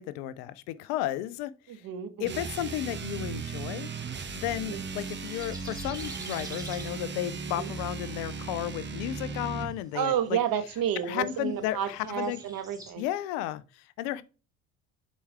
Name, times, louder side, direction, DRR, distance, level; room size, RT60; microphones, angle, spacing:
voice 1, 0.0-1.8 2.2-3.9 4.3-10.4 11.0-12.4 13.0-14.2, left 13 dB, 70° left, 0.7 m, -33 dB
voice 2, 1.7-2.4 4.7-4.8 7.6-7.7 9.9-13.0, right 9 dB, 50° right, 1.4 m, -31 dB
sound 1, 2.2-9.8, right 5 dB, 25° right, 1.0 m, -37 dB
sound 2, 4.5-12.9, right 2 dB, 10° right, 2.3 m, -50 dB
7.1 x 4.6 x 3.6 m
hypercardioid pair, 65°, 42 cm